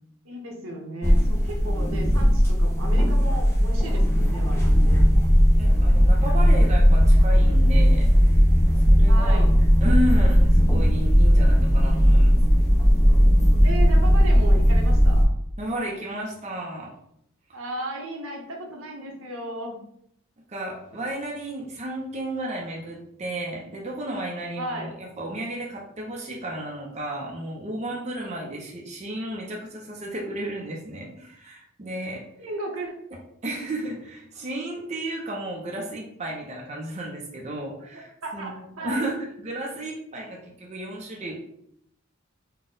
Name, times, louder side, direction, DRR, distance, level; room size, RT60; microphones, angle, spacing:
voice 1, 0.2-5.1 9.1-9.5 11.8-12.2 13.6-15.2 17.5-19.8 24.6-25.0 28.2-28.6 32.4-33.0 37.9-39.0, right 1 dB, 80° right, 0 dB, 0.9 m, -35 dB
sound 1, 1.0-15.2, equal, 10° left, 0.5 m, -17 dB
voice 2, 5.6-8.4 8.9-9.5 9.8-12.4 15.6-17.0 20.5-32.3 33.4-38.5 38.8-41.4, right 1 dB, 35° right, -1 dB, 0.5 m, -33 dB
4.0 x 2.2 x 3.7 m, 0.72 s
head